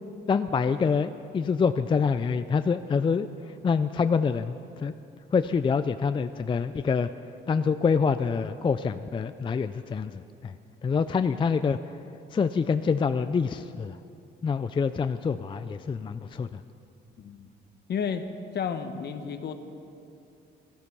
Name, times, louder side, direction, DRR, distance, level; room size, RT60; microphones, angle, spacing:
voice 1, 0.3-3.3 3.6-4.9 5.3-7.1 7.5-10.5 10.8-11.8 12.3-14.0 14.4-16.6, left 5 dB, 25° left, 11 dB, 0.3 m, -26 dB
voice 2, 17.2-17.5 17.9-18.2 18.5-19.5, left 7 dB, 55° left, 8 dB, 1.0 m, -31 dB
13.5 x 12.5 x 5.5 m, 2.6 s
cardioid pair, 90°, 20 cm